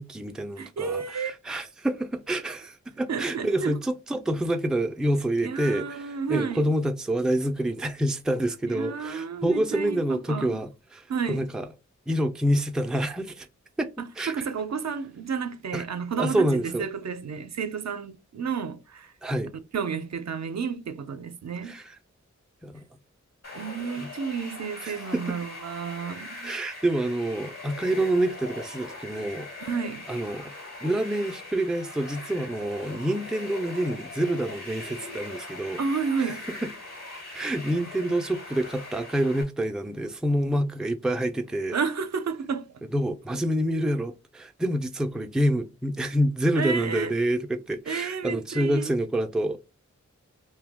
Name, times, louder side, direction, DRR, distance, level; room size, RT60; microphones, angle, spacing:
voice 1, 0.0-11.7 12.1-13.5 13.8-13.9 14.2-14.3 15.7-15.8 16.2-16.8 19.2-19.5 21.6-22.0 22.6-22.8 24.0-24.1 24.8-25.4 26.4-29.5 30.1-30.5 30.8-35.8 36.2-36.3 36.6-36.7 37.3-41.7 42.9-49.6, right 1 dB, ahead, 0.4 m, -27 dB
voice 2, 0.6-1.3 3.1-3.8 5.4-6.6 8.7-10.6 11.1-11.4 14.0-19.1 19.7-21.7 23.5-26.5 29.6-30.0 35.8-36.4 41.7-42.8 46.5-47.1 47.9-48.9, right 6 dB, 65° right, 0.5 m, -31 dB
sound 1, 23.4-39.4, left 2 dB, 60° left, 1.2 m, -41 dB
2.7 x 2.2 x 3.4 m
wide cardioid pair, 55°, 30 cm